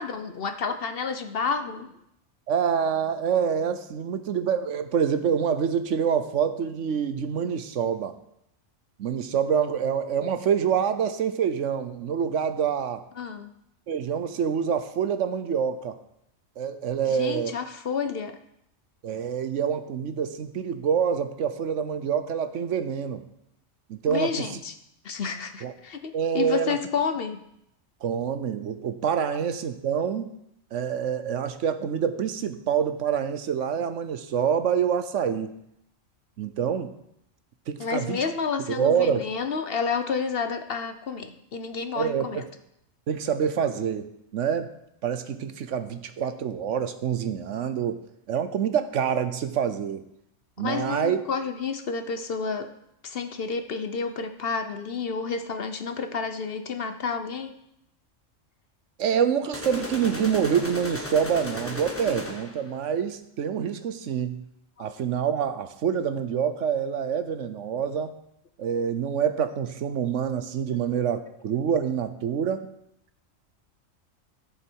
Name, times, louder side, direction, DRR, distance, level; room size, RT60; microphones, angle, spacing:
voice 1, 0.0-1.9 13.2-13.5 17.1-18.4 24.1-24.7 25.0-27.4 29.3-29.4 37.8-42.5 50.6-52.7 53.0-57.5 64.8-64.9, left 5 dB, 50° left, 8 dB, 0.9 m, -30 dB
voice 2, 2.5-8.1 9.0-13.0 13.9-16.0 16.6-17.6 19.0-23.2 23.9-24.5 25.6-25.7 26.1-26.8 28.0-30.3 30.7-35.5 36.4-36.9 37.7-38.2 38.8-39.2 42.0-42.4 43.1-44.7 45.0-48.0 48.3-50.0 50.6-51.2 59.0-64.4 64.8-68.1 68.6-72.7, right 7 dB, 70° right, 10 dB, 1.1 m, -26 dB
sound 1, 59.5-62.7, left 2 dB, 10° left, 1.3 m, -35 dB
14.5 x 7.0 x 4.6 m, 0.78 s
omnidirectional pair, 1.4 m